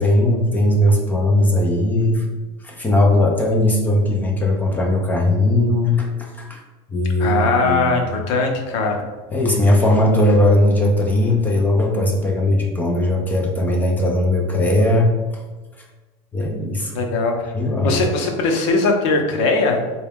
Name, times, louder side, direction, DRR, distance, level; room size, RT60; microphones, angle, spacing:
voice 1, 0.0-2.2 2.6-6.6 6.9-8.0 9.3-15.1 16.3-17.1 17.5-18.0, left 1 dB, 10° left, 0 dB, 0.5 m, -18 dB
voice 2, 7.2-8.9 16.9-17.5 17.8-19.8, left 3 dB, 70° left, 2 dB, 0.8 m, -20 dB
3.9 x 2.3 x 3.5 m, 1.2 s
cardioid pair, 160°, 16 cm